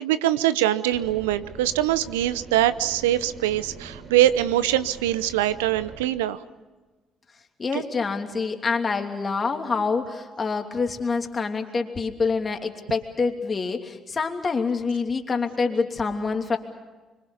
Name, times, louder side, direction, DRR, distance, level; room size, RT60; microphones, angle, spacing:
voice 1, 0.0-6.4 7.7-7.8, right 13 dB, 85° right, 15 dB, 0.7 m, -23 dB
sound 1, 0.9-6.1, right 4 dB, 65° right, 4.2 m, -43 dB
voice 2, 7.6-16.6, left 4 dB, 35° left, 4 dB, 2.9 m, -26 dB
25.0 x 24.5 x 7.1 m, 1.2 s
hypercardioid pair, 50°, 0 cm